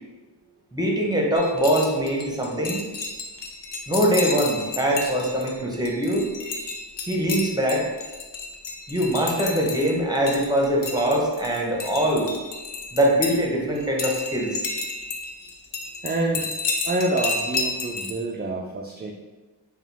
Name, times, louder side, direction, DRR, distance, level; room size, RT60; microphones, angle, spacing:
voice 1, 0.7-2.9 3.9-6.3 6.6-6.7 7.1-7.9 8.9-12.3 12.9-14.7, right 1 dB, 10° right, -1 dB, 0.8 m, -23 dB
sound 1, 1.3-13.4 13.8-18.1, left 3 dB, 85° left, 0.6 m, -32 dB
voice 2, 16.0-16.5 16.9-19.1, right 2 dB, 25° right, 0 dB, 0.3 m, -27 dB
4.9 x 2.4 x 3.4 m, 1.2 s
wide cardioid pair, 70°, 42 cm